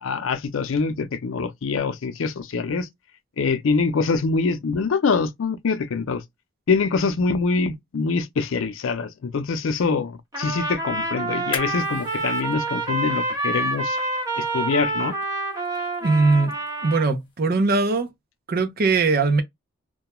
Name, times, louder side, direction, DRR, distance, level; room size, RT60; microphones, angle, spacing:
voice 1, 0.0-2.9 3.4-6.2 6.7-14.0 14.4-15.1, left 4 dB, 75° left, 0.5 m, -24 dB
Trumpet, 10.3-17.1, right 2 dB, 20° right, 1.0 m, -27 dB
sound 1, 11.3-18.1, left 5 dB, 25° left, 0.8 m, -43 dB
voice 2, 16.0-16.5 16.8-18.1 18.5-19.4, right 3 dB, 50° right, 0.6 m, -20 dB
2.2 x 2.2 x 2.9 m
head